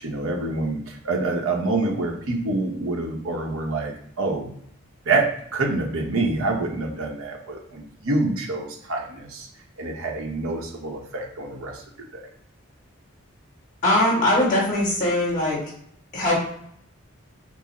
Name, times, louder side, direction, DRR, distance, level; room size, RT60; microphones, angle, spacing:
voice 1, 0.0-4.5 5.0-9.5 9.8-12.3, right 2 dB, 80° right, 0 dB, 0.9 m, -27 dB
voice 2, 13.8-15.6 16.1-16.4, left 1 dB, 35° left, -6 dB, 1.7 m, -21 dB
4.6 x 2.0 x 4.1 m, 0.67 s
head